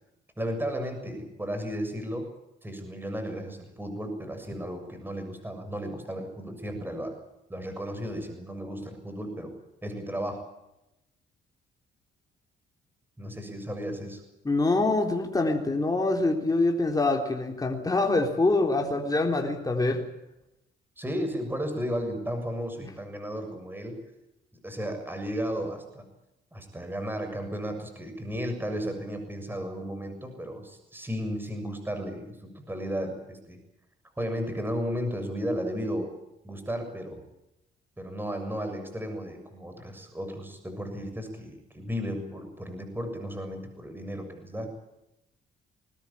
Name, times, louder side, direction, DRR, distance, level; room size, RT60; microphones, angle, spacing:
voice 1, 0.4-2.3 2.6-7.2 7.5-9.5 9.8-10.4 13.2-14.2 21.0-24.0 24.6-26.1 26.5-33.6 34.2-36.1 36.4-37.2 38.0-44.7, equal, 10° right, 6 dB, 7.0 m, -34 dB
voice 2, 14.4-20.1 22.8-22.9, left 2 dB, 20° left, 2 dB, 3.7 m, -25 dB
21.5 x 19.5 x 8.8 m, 0.88 s
cardioid pair, 90°, 20 cm